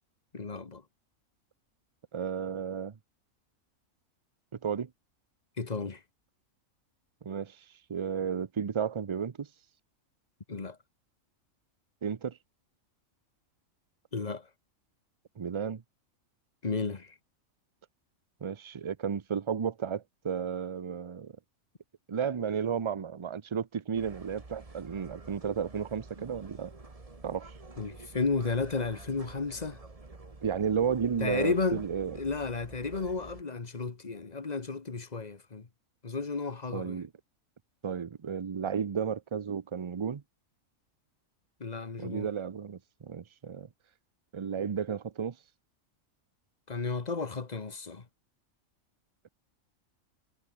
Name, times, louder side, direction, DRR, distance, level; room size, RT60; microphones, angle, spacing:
voice 1, 0.3-0.8 5.6-6.0 10.5-10.8 14.1-14.4 16.6-17.1 27.8-29.8 31.2-31.9 32.1-35.7 36.0-37.0 41.6-42.3 46.7-48.0, left 4 dB, 30° left, 1.4 m, -33 dB
voice 2, 2.1-2.9 4.6-4.9 7.2-7.6 7.9-9.5 12.0-12.4 15.4-15.8 18.4-21.3 22.1-26.7 27.2-27.5 30.4-32.2 36.7-37.1 37.8-40.2 42.0-43.7 44.3-45.4, right 7 dB, 45° right, 0.4 m, -33 dB
sound 1, 23.9-33.4, right 3 dB, 25° right, 1.8 m, -49 dB
omnidirectional pair, 1.4 m